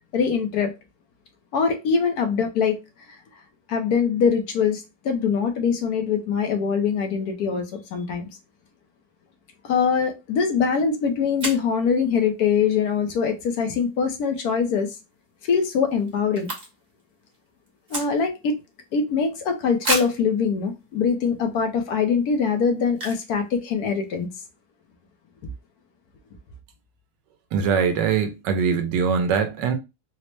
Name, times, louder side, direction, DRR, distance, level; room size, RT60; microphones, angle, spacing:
voice 1, 0.1-0.7 1.5-2.8 3.1-3.2 3.7-8.3 9.6-14.9 15.4-16.5 17.9-18.6 18.9-24.3 25.4-25.5, left 6 dB, 70° left, 1.1 m, -23 dB
sound 1, 10.7-10.8 11.4-11.7 14.7-14.9 15.2-15.3 15.5-17.0 17.3-18.5 19.0-19.1 19.8-20.3 21.0-21.1 21.6-21.7 22.9-23.4 23.6-23.7 23.9-24.2, right 1 dB, 35° right, 1.0 m, -30 dB
voice 2, 27.5-29.7, right 6 dB, 85° right, 1.3 m, -22 dB
4.2 x 2.1 x 3.1 m
omnidirectional pair, 1.9 m